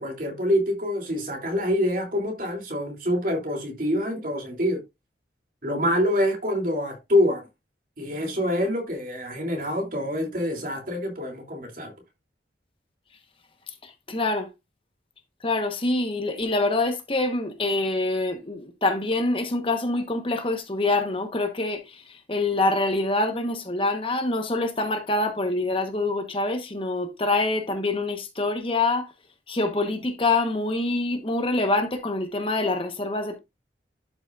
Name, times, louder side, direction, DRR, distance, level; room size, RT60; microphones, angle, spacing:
voice 1, 0.0-4.8 5.6-7.5 8.0-11.9, left 1 dB, 45° right, 3.1 m, -26 dB
voice 2, 13.8-14.5 15.4-29.1 29.5-33.4, left 2 dB, 30° left, 1.2 m, -25 dB
12.0 x 6.0 x 2.5 m
head